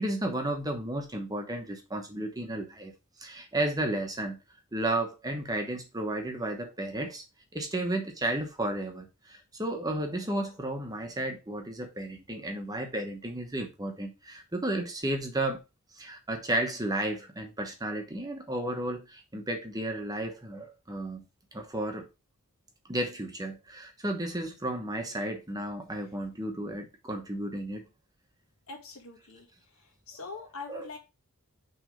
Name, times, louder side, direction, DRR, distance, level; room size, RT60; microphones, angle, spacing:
voice 1, 0.0-2.9 3.2-4.4 4.7-7.2 7.5-15.6 16.0-21.2 21.5-22.1 22.9-27.8 30.7-30.9, right 1 dB, 15° right, 1.1 m, -33 dB
voice 2, 28.7-29.5 30.1-31.0, left 4 dB, 65° left, 1.9 m, -42 dB
6.2 x 3.4 x 5.0 m
head